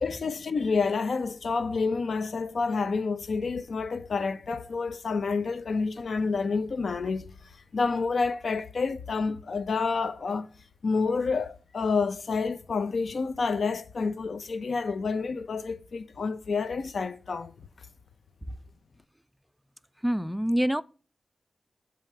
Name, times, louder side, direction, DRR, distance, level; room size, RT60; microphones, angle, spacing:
voice 1, 0.0-7.3 7.7-10.5 10.8-17.5, left 4 dB, 75° left, 0.4 m, -29 dB
voice 2, 20.0-20.8, equal, 5° right, 0.4 m, -25 dB
7.4 x 2.8 x 4.6 m
cardioid pair, 60°, 0 cm